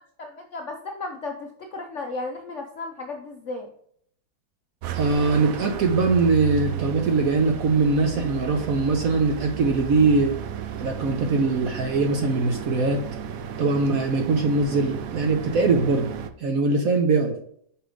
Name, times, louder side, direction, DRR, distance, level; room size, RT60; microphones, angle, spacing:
voice 1, 0.2-3.7, left 3 dB, 60° left, 3 dB, 0.7 m, -34 dB
sound 1, 4.8-16.3, right 9 dB, 75° right, 0.8 m, -33 dB
voice 2, 4.9-10.3 10.8-13.0 13.6-16.1 16.4-17.3, right 3 dB, 60° right, 5 dB, 1.0 m, -22 dB
6.1 x 5.0 x 4.9 m, 0.64 s
omnidirectional pair, 2.1 m